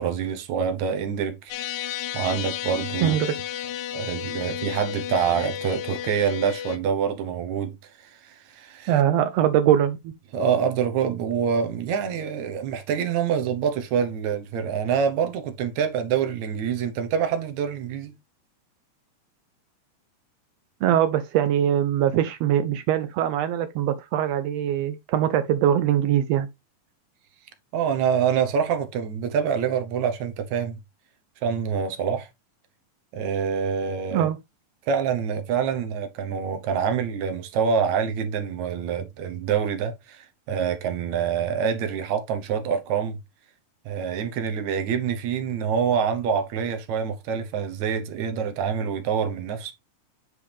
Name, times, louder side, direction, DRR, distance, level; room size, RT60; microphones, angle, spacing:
voice 1, 0.0-1.8 2.1-3.2 3.9-8.9 10.3-18.1 27.7-30.8 31.4-32.3 33.1-34.3 34.9-43.2 43.9-49.7, right 7 dB, 70° right, 2.1 m, -26 dB
sound 1, 1.5-6.8, left 11 dB, 80° left, 1.9 m, -32 dB
voice 2, 3.0-3.3 8.9-10.1 20.8-26.5 34.1-34.4, right 10 dB, 85° right, 1.4 m, -22 dB
8.6 x 4.7 x 3.3 m
omnidirectional pair, 3.6 m